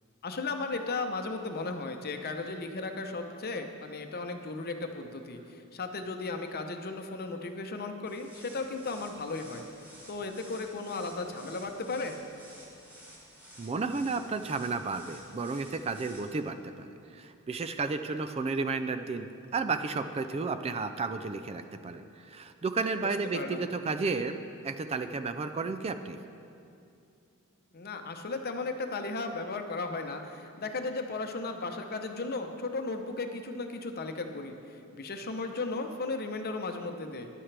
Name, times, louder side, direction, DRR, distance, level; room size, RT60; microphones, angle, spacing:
voice 1, 0.2-5.4 5.7-9.6 10.1-12.2 23.3-23.6 27.7-34.6 34.9-37.3, left 3 dB, 45° left, 5 dB, 0.8 m, -35 dB
sound 1, 8.1-16.2, equal, 5° right, 3.1 m, -52 dB
voice 2, 13.6-26.2, right 4 dB, 30° right, 9 dB, 0.3 m, -33 dB
14.5 x 11.0 x 3.4 m, 2.6 s
head